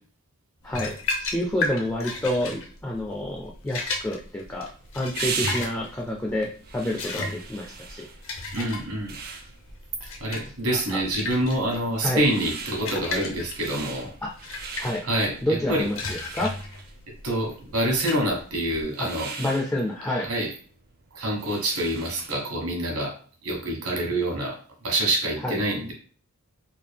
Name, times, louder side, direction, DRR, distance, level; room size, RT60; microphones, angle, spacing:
voice 1, 0.6-4.7 4.9-8.1 10.7-11.0 12.0-12.2 14.2-14.3 14.8-15.0 15.4-16.5 19.0-19.1 19.4-20.3 25.4-25.6, left 1 dB, 10° left, -1 dB, 0.4 m, -28 dB
sound 1, 0.7-18.8, left 3 dB, 65° left, 0.8 m, -35 dB
sound 2, 4.1-22.6, right 5 dB, 45° right, 0.5 m, -40 dB
voice 2, 8.5-9.1 10.2-14.1 15.0-15.4 15.7-15.8 17.2-19.3 20.1-20.5 21.1-23.1 23.4-24.5 24.8-25.9, right 1 dB, 75° right, 0 dB, 1.3 m, -26 dB
3.7 x 2.4 x 3.3 m, 0.44 s
head